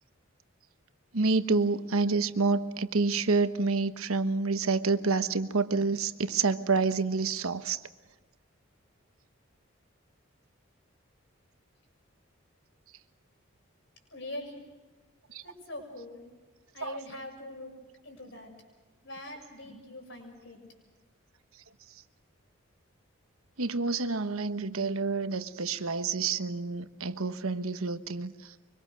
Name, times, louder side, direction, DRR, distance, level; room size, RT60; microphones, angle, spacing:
voice 1, 1.1-7.8 15.3-15.4 16.8-17.0 23.6-28.5, right 4 dB, 85° right, 1.2 m, -28 dB
voice 2, 14.1-14.8 15.4-16.3 16.7-18.5 19.0-20.6, left 1 dB, 60° left, 6.9 m, -43 dB
24.5 x 24.5 x 6.4 m
head